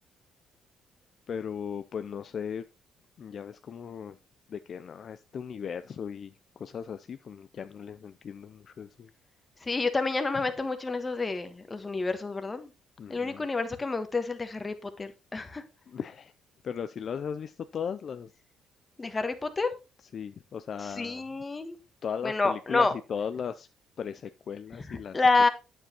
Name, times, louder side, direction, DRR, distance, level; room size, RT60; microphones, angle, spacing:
voice 1, 1.3-2.6 3.2-4.2 4.5-9.1 13.0-13.4 15.9-16.3 16.6-18.3 20.1-21.2 22.0-23.7 24.0-25.2, left 7 dB, 50° left, 0.4 m, -37 dB
voice 2, 9.6-12.7 13.1-15.6 19.0-19.7 20.8-21.8 22.2-22.9 24.9-25.5, left 3 dB, 20° left, 1.3 m, -28 dB
8.9 x 7.5 x 2.9 m
cardioid pair, 105°, 0 cm